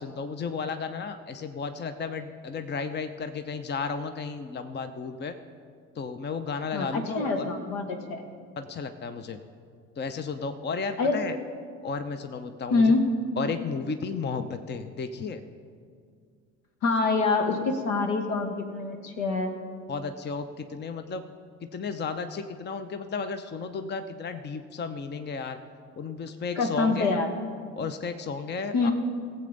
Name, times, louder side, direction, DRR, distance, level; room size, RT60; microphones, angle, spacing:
voice 1, 0.0-5.4 6.0-7.5 8.6-9.4 10.0-11.4 11.8-12.8 13.4-15.4 19.9-21.2 21.7-25.6 26.0-27.2 27.8-28.9, left 5 dB, 30° left, 9 dB, 0.7 m, -33 dB
voice 2, 6.7-8.2 11.0-11.1 12.7-13.0 16.8-19.6 26.5-27.3 28.7-28.9, left 3 dB, 70° left, 5 dB, 1.4 m, -25 dB
18.0 x 7.8 x 4.0 m, 2.1 s
hypercardioid pair, 55°, 37 cm